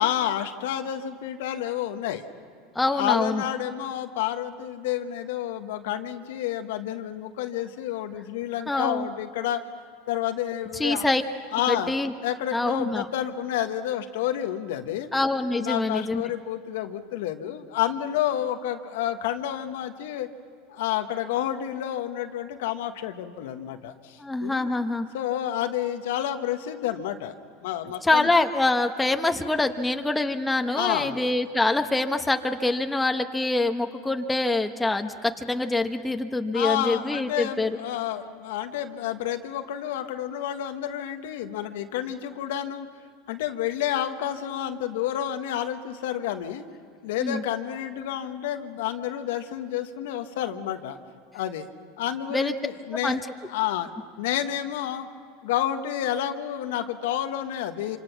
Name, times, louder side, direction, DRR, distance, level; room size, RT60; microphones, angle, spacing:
voice 1, 0.0-2.3 2.9-9.6 10.1-11.1 11.5-11.9 12.2-15.1 15.6-20.3 20.7-24.7 25.1-27.3 27.6-28.3 30.8-31.2 36.5-42.9 43.3-46.6 47.0-51.0 51.3-51.7 52.0-53.2 53.5-53.9 54.2-55.1 55.4-58.0, left 11 dB, 75° left, 7 dB, 1.2 m, -29 dB
voice 2, 2.7-3.4 8.7-9.1 10.7-11.2 11.7-12.1 12.5-13.0 15.1-16.2 24.2-25.1 28.0-37.8 47.2-47.4 52.3-52.5 53.0-53.2, left 2 dB, 10° left, 6 dB, 1.2 m, -25 dB
26.5 x 26.0 x 6.0 m, 2.2 s
hypercardioid pair, 100°, 0 cm